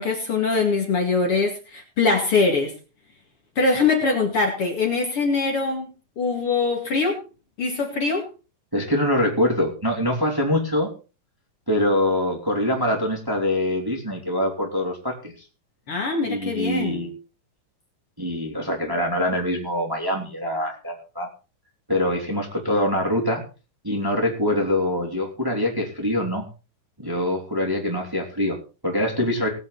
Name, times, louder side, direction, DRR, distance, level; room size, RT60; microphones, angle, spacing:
voice 1, 0.0-2.7 3.6-5.9 6.2-7.2 7.6-8.3 15.9-17.1, left 4 dB, 45° left, 1 dB, 2.9 m, -22 dB
voice 2, 8.7-10.9 11.7-15.3 16.3-17.2 18.2-21.3 21.9-23.4 23.8-26.5 27.0-29.5, left 1 dB, 5° right, 0 dB, 2.6 m, -24 dB
20.0 x 8.0 x 4.1 m, 0.33 s
omnidirectional pair, 3.8 m